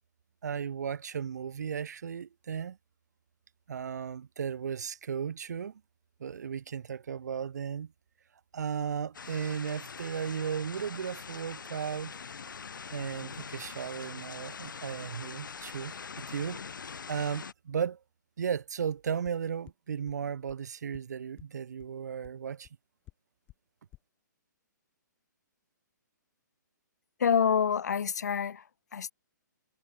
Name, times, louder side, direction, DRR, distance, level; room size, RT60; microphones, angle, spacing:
voice 1, 0.4-2.8 3.7-5.8 6.2-7.9 8.5-12.2 12.9-16.6 17.1-18.0 18.4-22.7, right 7 dB, 60° right, 0.7 m, -35 dB
sound 1, 9.1-17.5, left 6 dB, 85° left, 2.0 m, -43 dB
sound 2, 19.2-19.3 19.7-19.8 20.1-20.2 20.5-20.6 20.9-21.0 21.4-21.5 21.8-21.9 22.2-22.3 22.6-22.7 23.1-23.2 23.5-23.6 23.9-24.0, left 16 dB, 15° left, 1.6 m, -51 dB
voice 2, 27.2-29.1, left 7 dB, 60° left, 1.1 m, -27 dB
hypercardioid pair, 175°, 10 cm